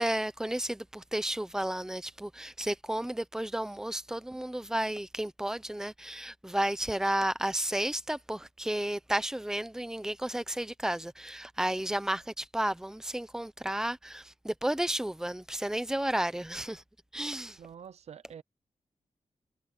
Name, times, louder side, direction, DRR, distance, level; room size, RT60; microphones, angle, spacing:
voice 1, 0.0-16.8 17.1-17.6, right 1 dB, 5° right, 0.8 m, -32 dB
voice 2, 17.6-18.4, right 8 dB, 60° right, 0.5 m, -47 dB
wide cardioid pair, 155°, 12 cm